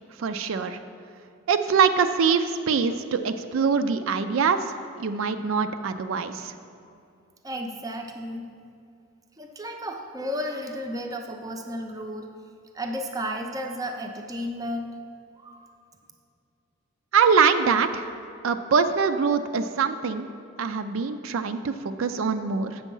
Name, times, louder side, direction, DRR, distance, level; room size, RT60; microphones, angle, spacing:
voice 1, 0.2-0.8 1.5-4.6 5.0-6.5 17.1-18.1 18.4-20.3 20.6-22.8, right 5 dB, 70° right, 9 dB, 0.4 m, -23 dB
voice 2, 7.4-8.5 9.4-12.3 12.7-14.9 15.4-15.7, equal, 15° right, 3 dB, 0.5 m, -33 dB
8.2 x 6.2 x 5.4 m, 2.5 s
head